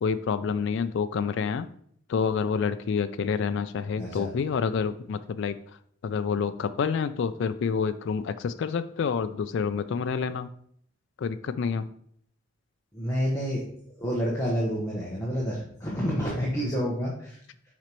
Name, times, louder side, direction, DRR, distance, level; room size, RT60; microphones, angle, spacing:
voice 1, 0.0-1.7 2.1-5.5 6.0-10.5 11.2-11.9, left 6 dB, 65° left, 10 dB, 0.3 m, -28 dB
voice 2, 4.0-4.3 12.9-13.7 14.0-17.4, equal, 15° left, -5 dB, 1.1 m, -29 dB
7.2 x 5.1 x 3.0 m, 0.65 s
head